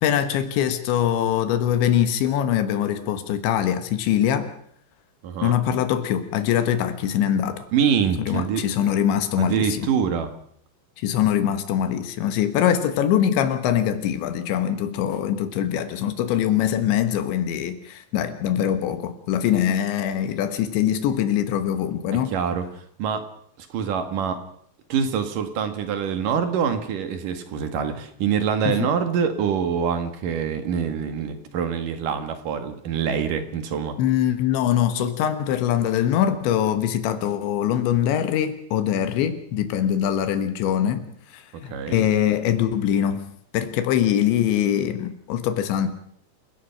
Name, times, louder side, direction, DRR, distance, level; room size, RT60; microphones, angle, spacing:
voice 1, 0.0-4.5 5.4-7.7 8.2-9.9 11.0-22.3 28.7-28.9 34.0-43.3 43.5-45.9, left 10 dB, 85° left, 9 dB, 3.8 m, -23 dB
voice 2, 5.2-5.6 7.7-8.7 9.4-10.3 22.1-23.3 23.6-24.4 24.9-34.0 41.5-42.1, right 7 dB, 55° right, 8 dB, 2.9 m, -25 dB
28.5 x 17.0 x 5.9 m, 0.65 s
omnidirectional pair, 5.1 m